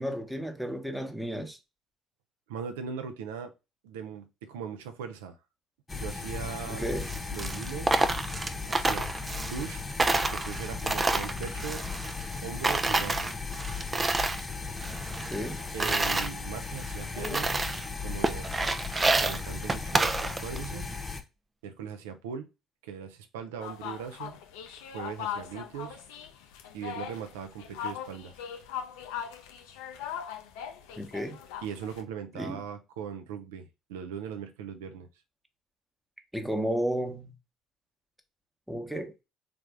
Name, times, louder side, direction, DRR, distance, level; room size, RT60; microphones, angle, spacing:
voice 1, 0.0-1.6 6.7-7.1 15.1-15.6 31.0-31.4 32.3-32.6 36.3-37.3 38.7-39.1, equal, 5° right, 0.9 m, -33 dB
voice 2, 2.5-3.5 3.8-5.4 5.9-6.9 7.3-8.0 8.7-9.1 9.5-9.9 10.3-11.8 12.4-13.3 15.7-17.5 18.0-18.5 19.0-20.9 21.6-22.5 22.8-24.4 24.9-26.0 26.7-28.3 31.6-35.1, right 7 dB, 85° right, 0.5 m, -39 dB
sound 1, 5.9-21.2, left 4 dB, 25° left, 0.9 m, -36 dB
Coin (dropping), 6.9-9.7 10.0-12.4 12.6-14.5 14.8-16.3 16.8-16.9 17.2-17.9 18.2-20.7, right 3 dB, 30° right, 0.4 m, -29 dB
sound 2, 23.6-32.0, left 8 dB, 80° left, 0.4 m, -40 dB
3.4 x 2.4 x 3.3 m
hypercardioid pair, 55°, 0 cm